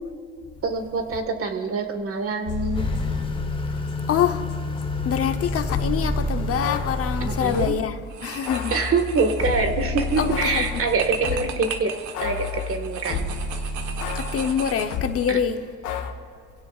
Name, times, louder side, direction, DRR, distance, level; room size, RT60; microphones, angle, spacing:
voice 1, 0.6-2.9 7.2-7.8 8.7-13.3 15.3-15.4, right 4 dB, 50° right, 1.7 m, -25 dB
sound 1, 2.5-4.2 4.5-7.8 8.5-11.7 12.1-15.2 15.8-16.1, left 4 dB, 85° left, 1.4 m, -31 dB
Motor vehicle (road) / Accelerating revving vroom, 2.7-7.7, left 2 dB, 15° left, 1.1 m, -29 dB
voice 2, 4.1-4.4 5.0-8.7 10.2-10.8 14.1-15.6, left 8 dB, 50° left, 0.9 m, -25 dB
sound 2, 7.3-7.7 8.1-15.3, right 7 dB, 75° right, 1.3 m, -37 dB
26.5 x 16.5 x 2.5 m
cardioid pair, 120°, 30 cm